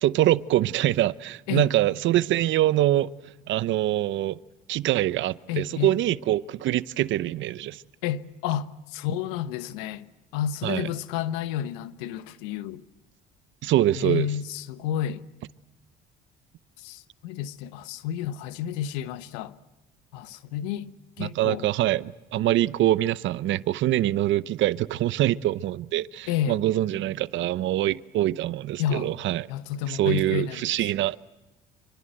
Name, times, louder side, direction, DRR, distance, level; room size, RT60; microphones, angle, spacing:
voice 1, 0.0-3.1 3.5-4.4 4.7-7.8 10.6-10.9 13.6-14.3 21.2-29.5 29.9-31.2, right 14 dB, 65° right, 0.9 m, -24 dB
voice 2, 5.5-5.9 8.0-10.1 10.3-12.8 14.0-15.2 16.8-19.5 20.1-20.9 21.2-21.7 26.3-26.6 28.8-29.1 29.5-30.9, left 10 dB, 90° left, 1.1 m, -30 dB
26.5 x 25.0 x 7.8 m
supercardioid pair, 75°, 21 cm